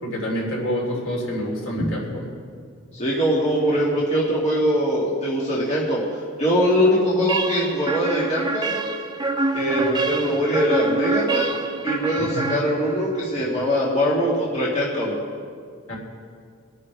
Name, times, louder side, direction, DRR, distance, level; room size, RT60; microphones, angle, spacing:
voice 1, 0.0-2.3 12.2-12.5 15.9-16.0, equal, 65° left, -3 dB, 3.5 m, -27 dB
voice 2, 2.9-8.8 9.5-11.6 11.8-15.1, equal, 30° left, -6 dB, 2.0 m, -22 dB
sound 1, 7.3-13.2, right 3 dB, 20° right, 0.6 m, -26 dB
25.0 x 9.5 x 3.4 m, 2.1 s
head